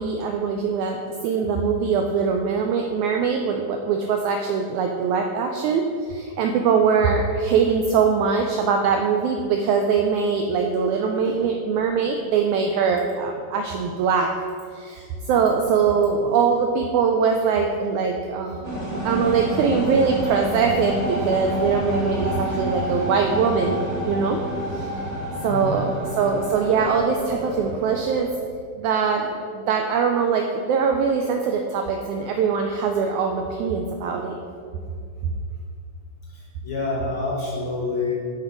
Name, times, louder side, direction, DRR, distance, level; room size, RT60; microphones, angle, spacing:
voice 1, 0.0-14.3 14.7-18.7 19.0-23.8 24.1-24.4 24.7-24.9 25.4-28.3 28.8-34.4 35.2-35.3, right 5 dB, 85° right, 3 dB, 1.7 m, -22 dB
sound 1, 18.6-28.3, equal, 40° right, 1.0 m, -29 dB
voice 2, 25.5-25.8 36.6-38.1, left 3 dB, 55° left, -5 dB, 1.6 m, -27 dB
7.4 x 6.6 x 4.6 m, 2.3 s
omnidirectional pair, 3.9 m